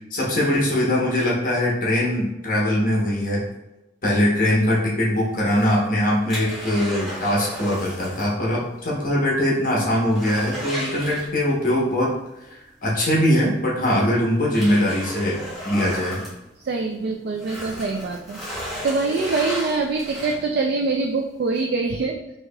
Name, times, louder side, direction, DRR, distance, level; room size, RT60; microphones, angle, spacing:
voice 1, 0.1-3.4 4.0-12.1 12.5-16.2, left 1 dB, 45° left, -4 dB, 1.0 m, -21 dB
sound 1, 5.4-8.4 8.6-8.7 9.2-9.3 9.7-11.7 13.1-13.2 13.9-17.0 17.3-20.6 21.2-21.3, equal, ahead, 1.1 m, -34 dB
voice 2, 16.6-22.2, right 3 dB, 55° right, 2 dB, 0.3 m, -24 dB
4.6 x 2.8 x 2.3 m, 0.91 s
head